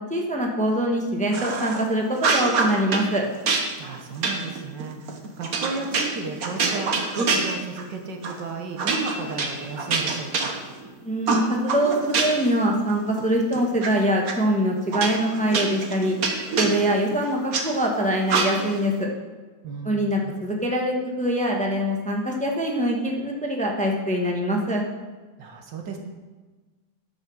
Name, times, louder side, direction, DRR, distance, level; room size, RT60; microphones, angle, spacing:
voice 1, 0.1-3.2 11.0-16.2 16.6-19.1 19.8-24.8, equal, 5° left, 0 dB, 1.1 m, -24 dB
sound 1, 1.3-1.8 2.2-3.1 3.5-7.9 8.2-8.4 8.8-10.9 11.3-12.5 12.9-13.9 14.3-14.4 14.9-17.6 18.3-18.8, right 4 dB, 55° right, 1.5 m, -26 dB
voice 2, 3.8-10.5 19.6-20.3 25.4-26.0, right 4 dB, 75° right, 3 dB, 1.9 m, -34 dB
10.0 x 6.2 x 6.3 m, 1.3 s
omnidirectional pair, 1.9 m